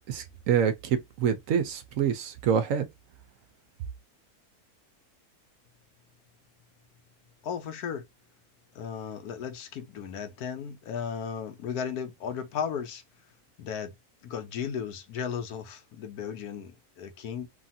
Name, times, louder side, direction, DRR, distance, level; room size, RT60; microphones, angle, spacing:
voice 1, 0.1-2.9, right 8 dB, 70° right, 0.9 m, -26 dB
voice 2, 7.4-8.1 8.7-13.0 13.6-13.9 14.2-17.5, left 7 dB, 80° left, 1.2 m, -35 dB
3.2 x 2.4 x 2.6 m
omnidirectional pair, 1.6 m